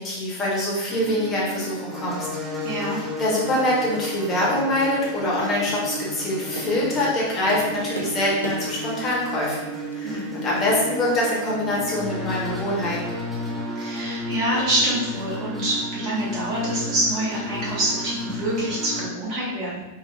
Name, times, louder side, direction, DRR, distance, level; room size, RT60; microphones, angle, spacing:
voice 1, 0.0-2.3 2.6-13.2, left 1 dB, 30° left, -5 dB, 1.0 m, -25 dB
sound 1, 0.9-19.1, left 1 dB, 5° right, 0.5 m, -32 dB
voice 2, 2.6-3.0 10.0-10.3 13.7-19.8, right 1 dB, 40° right, -7 dB, 1.1 m, -26 dB
Tap, 5.1-11.3, right 1 dB, 90° left, 0.4 m, -40 dB
3.1 x 2.2 x 2.4 m, 1.1 s
figure-of-eight pair, 90°, 0 cm